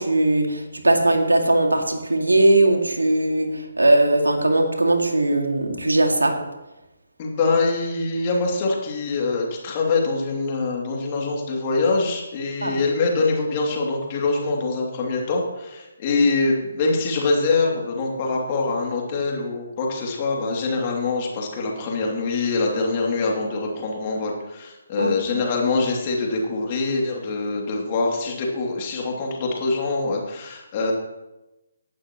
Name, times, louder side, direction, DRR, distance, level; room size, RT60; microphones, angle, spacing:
voice 1, 0.0-6.3 12.6-12.8 25.0-25.4, right 2 dB, 75° right, 3 dB, 2.2 m, -19 dB
voice 2, 7.2-30.9, left 3 dB, 30° left, -1 dB, 2.7 m, -24 dB
17.0 x 11.5 x 3.1 m, 1.0 s
figure-of-eight pair, 140°, 0 cm